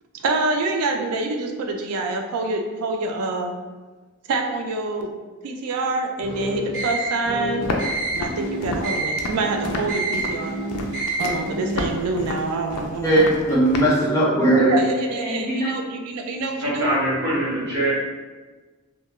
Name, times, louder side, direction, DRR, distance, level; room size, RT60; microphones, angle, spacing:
voice 1, 0.2-3.5 4.3-5.1 5.4-7.7 8.1-10.6 11.2-13.3 14.6-17.0, right 3 dB, 90° right, 4 dB, 0.4 m, -26 dB
sound 1, 6.2-11.7, right 2 dB, 20° right, 1.0 m, -28 dB
Walk footsteps, 7.6-14.0, left 2 dB, 90° left, 0.4 m, -30 dB
voice 2, 13.0-14.7 15.2-15.7, right 1 dB, 15° left, -7 dB, 0.5 m, -19 dB
voice 3, 16.6-17.9, right 1 dB, 50° right, -8 dB, 1.0 m, -23 dB
2.2 x 2.1 x 2.9 m, 1.3 s
head